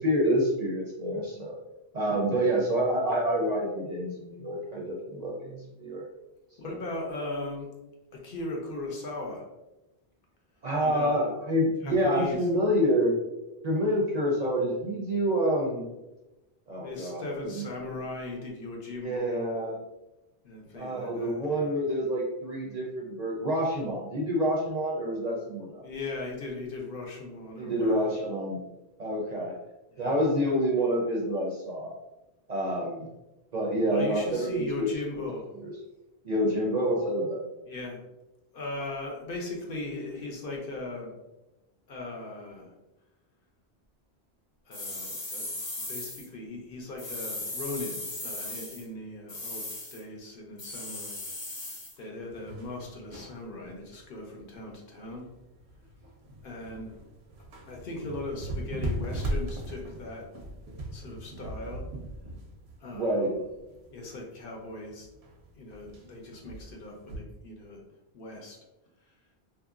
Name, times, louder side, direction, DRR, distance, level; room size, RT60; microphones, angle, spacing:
voice 1, 0.0-1.5 1.9-6.0 10.6-13.2 13.6-15.9 16.7-17.7 19.0-19.8 20.7-25.8 27.6-28.6 29.0-29.5 30.0-32.0 32.5-33.1 33.5-35.3 35.6-35.7 36.2-37.5 62.9-63.3, equal, 55° right, -3 dB, 0.5 m, -27 dB
voice 2, 6.6-7.7 8.2-9.4 10.8-11.3 11.8-12.4 16.8-19.5 20.4-21.7 25.8-28.1 29.9-30.2 33.9-35.5 37.7-38.0 38.5-41.1 41.9-42.7 44.7-45.5 45.9-49.6 49.9-51.2 52.0-55.3 56.4-57.0 57.7-60.3 60.9-61.8 62.8-63.4 63.9-65.1 65.6-67.8 68.1-68.6, left 2 dB, 65° left, 0 dB, 0.8 m, -38 dB
sound 1, 44.7-46.3 47.0-48.8 49.3-50.0 50.6-52.0, left 2 dB, 35° left, 0.5 m, -37 dB
sound 2, 52.3-67.2, right 1 dB, 85° right, 0.8 m, -39 dB
2.8 x 2.5 x 2.4 m, 1.0 s
omnidirectional pair, 1.1 m